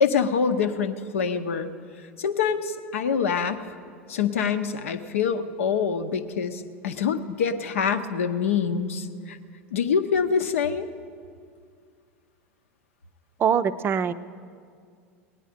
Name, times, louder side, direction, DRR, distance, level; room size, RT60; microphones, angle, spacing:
voice 1, 0.0-1.7 2.2-3.6 4.1-9.4 9.7-10.9, left 6 dB, 70° left, 10 dB, 0.8 m, -25 dB
voice 2, 13.4-14.1, right 7 dB, 30° right, 14 dB, 0.5 m, -23 dB
18.0 x 9.9 x 5.1 m, 2.2 s
figure-of-eight pair, 80°, 7 cm